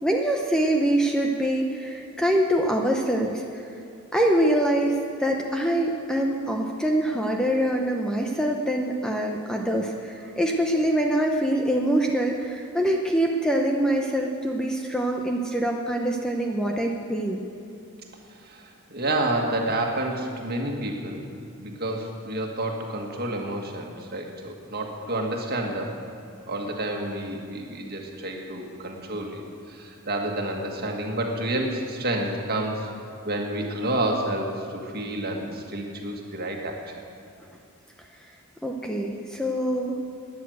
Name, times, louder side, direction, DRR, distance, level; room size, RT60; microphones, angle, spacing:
voice 1, 0.0-3.6 4.1-17.4 38.6-40.0, right 1 dB, 5° left, 1 dB, 0.7 m, -24 dB
voice 2, 18.3-21.3 21.5-26.0 26.5-29.4 29.7-32.9 33.3-36.9, right 1 dB, 45° right, 1 dB, 1.8 m, -29 dB
12.5 x 10.5 x 7.9 m, 2.6 s
head